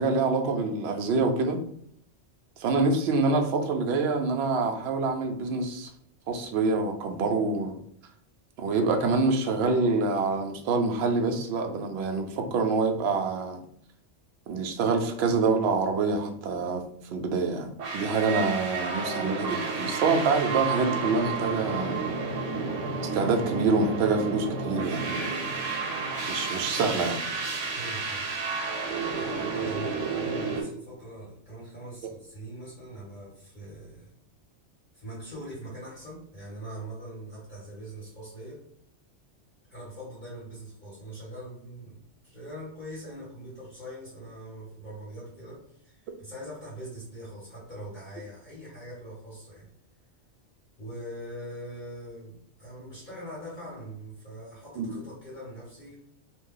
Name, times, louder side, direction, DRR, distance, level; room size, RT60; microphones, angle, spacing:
voice 1, 0.0-1.6 2.6-5.9 6.3-7.8 8.6-13.6 14.5-22.2 23.1-25.3 26.3-27.2 54.8-54.9, right 3 dB, 65° right, 5 dB, 0.8 m, -26 dB
sound 1, 17.8-30.6, right 4 dB, 85° right, 1.1 m, -31 dB
voice 2, 27.7-28.3 29.2-34.1 34.9-38.6 39.7-49.7 50.8-56.0, right 1 dB, 40° left, -9 dB, 1.5 m, -42 dB
2.7 x 2.3 x 3.7 m, 0.67 s
omnidirectional pair, 1.3 m